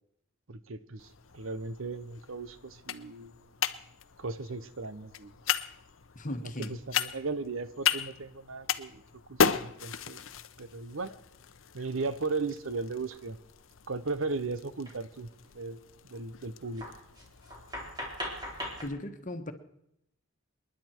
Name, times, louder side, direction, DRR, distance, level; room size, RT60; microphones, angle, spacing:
voice 1, 0.5-3.4 4.2-5.3 6.7-9.0 9.3-10.2 10.6-11.1 11.7-13.4 13.9-15.8 16.1-16.8, right 3 dB, 80° right, 14 dB, 0.9 m, -36 dB
sound 1, 1.0-18.9, left 7 dB, 75° left, 0.8 m, -36 dB
voice 2, 6.1-6.8 18.8-19.5, left 1 dB, 40° left, 7 dB, 1.5 m, -37 dB
sound 2, 13.1-13.2 14.8-15.0 15.2-15.5 16.1-16.2 16.7-18.8, equal, 20° right, 3.7 m, -40 dB
28.5 x 10.5 x 4.5 m, 0.77 s
head